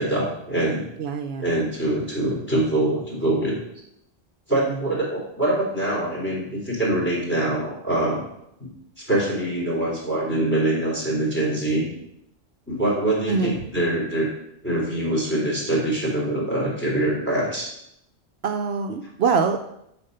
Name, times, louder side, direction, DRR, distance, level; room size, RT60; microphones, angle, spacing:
voice 1, 0.0-0.9 1.4-3.6 4.5-8.2 8.6-8.7 9.0-11.9 12.7-14.3 14.6-17.7, right 1 dB, 10° left, -5 dB, 3.6 m, -24 dB
voice 2, 1.0-1.5 13.3-13.6 18.4-19.7, right 5 dB, 70° right, 6 dB, 0.8 m, -24 dB
10.0 x 4.4 x 5.4 m, 0.78 s
omnidirectional pair, 1.1 m